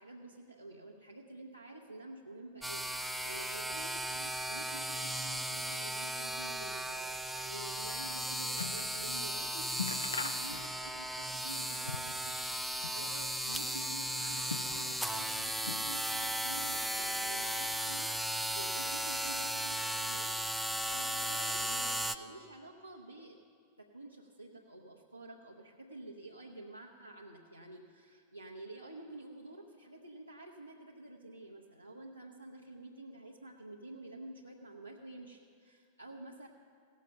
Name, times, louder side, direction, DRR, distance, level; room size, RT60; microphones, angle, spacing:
voice 1, 0.0-20.4 20.9-23.4 23.8-36.5, right 2 dB, 90° right, -3 dB, 0.7 m, -49 dB
sound 1, 2.6-22.2, equal, ahead, 0.4 m, -36 dB
sound 2, 7.8-9.0 9.3-9.4 9.7-11.0 11.3-12.3 12.6-13.5 14.1-15.1 15.6-16.3 16.6-17.4 18.1-18.2, left 5 dB, 75° left, 0.5 m, -43 dB
16.5 x 6.4 x 5.7 m, 2.1 s
figure-of-eight pair, 90°, 0 cm